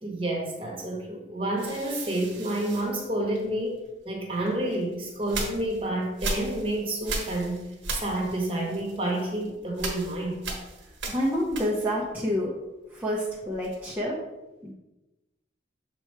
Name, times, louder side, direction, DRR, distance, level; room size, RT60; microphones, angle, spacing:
voice 1, 0.0-7.6 7.9-10.4, right 1 dB, 30° right, 0 dB, 1.2 m, -29 dB
sound 1, 1.6-3.8 4.4-12.1 12.4-14.0, right 3 dB, 80° right, 1.2 m, -37 dB
voice 2, 11.1-12.5 12.9-14.2 14.6-14.7, equal, 10° right, -6 dB, 0.7 m, -28 dB
6.9 x 3.0 x 4.6 m, 1.0 s
head